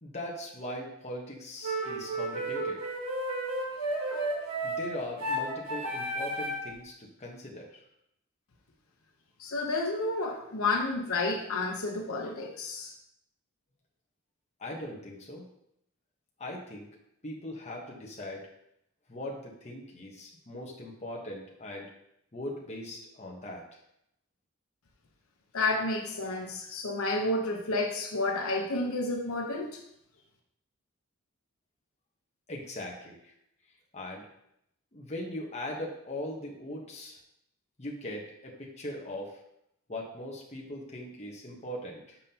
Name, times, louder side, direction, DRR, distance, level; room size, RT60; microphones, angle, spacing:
voice 1, 0.0-2.9 4.6-7.8 14.6-15.5 16.4-16.9 17.2-18.5 19.1-21.9 22.3-23.6 32.5-33.3 33.9-34.3 34.9-37.2 37.8-39.4 39.9-42.2, left 1 dB, 30° left, -1 dB, 1.1 m, -40 dB
sound 1, 1.6-6.7, right 1 dB, 80° right, 1.5 m, -33 dB
voice 2, 9.4-12.9 25.5-29.8, left 2 dB, 80° left, 1 dB, 0.9 m, -30 dB
7.3 x 5.4 x 2.9 m, 0.76 s
head